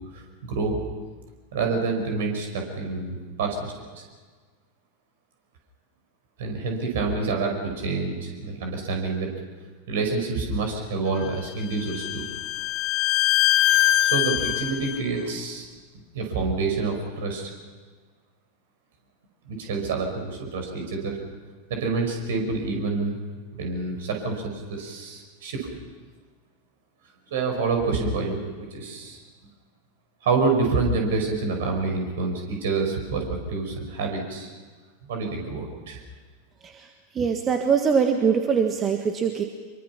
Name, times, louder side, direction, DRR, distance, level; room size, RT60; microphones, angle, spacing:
voice 1, 0.1-0.8 1.5-4.0 6.4-7.6 7.8-9.3 9.9-12.3 14.0-15.7 16.1-17.5 19.5-21.2 21.7-23.2 23.6-25.7 27.3-28.4 28.7-29.2 30.2-34.5 35.1-36.0, right 4 dB, 55° right, 3 dB, 5.3 m, -27 dB
Bowed string instrument, 11.2-15.0, left 14 dB, 40° left, 0.7 m, -23 dB
voice 2, 37.1-39.4, right 6 dB, 25° right, 5 dB, 1.5 m, -22 dB
25.5 x 23.5 x 5.9 m, 1.4 s
figure-of-eight pair, 90°, 0 cm